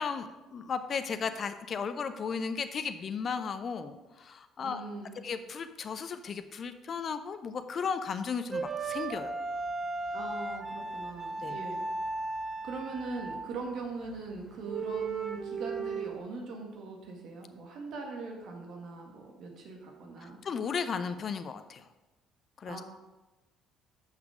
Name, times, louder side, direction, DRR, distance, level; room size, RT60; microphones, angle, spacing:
voice 1, 0.0-4.8 5.2-9.3 11.4-11.6 20.2-21.8 22.6-22.8, left 6 dB, 45° left, 10 dB, 0.6 m, -35 dB
voice 2, 4.6-5.2 10.1-11.9 12.6-20.4 22.6-22.8, right 3 dB, 60° right, 1 dB, 1.7 m, -41 dB
sound 1, 8.5-13.6 14.0-14.2 14.6-16.2, right 3 dB, 25° right, 1.0 m, -36 dB
7.3 x 5.8 x 5.0 m, 1.1 s
hypercardioid pair, 55°, 0 cm